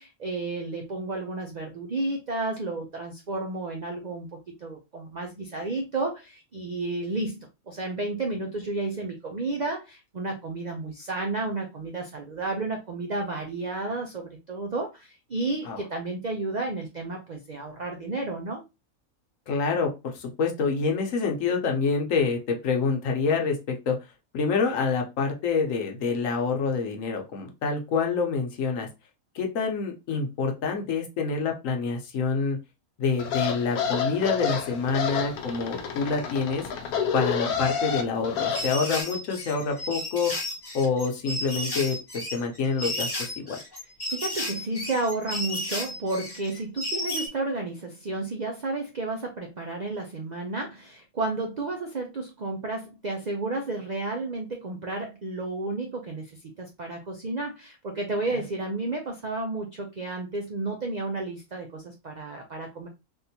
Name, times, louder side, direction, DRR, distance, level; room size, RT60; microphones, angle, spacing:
voice 1, 0.0-18.6 44.1-62.9, right 2 dB, 60° right, 2 dB, 0.4 m, -32 dB
voice 2, 19.5-24.0 24.3-28.9 29.3-32.6 33.0-36.6 37.1-40.3 40.7-43.6 58.3-58.4, left 5 dB, 65° left, 3 dB, 1.1 m, -27 dB
sound 1, 33.2-38.6, left 7 dB, 90° left, 1.1 m, -29 dB
sound 2, 38.5-47.3, left 1 dB, 20° left, 1.0 m, -33 dB
3.6 x 2.5 x 2.7 m, 0.24 s
omnidirectional pair, 1.5 m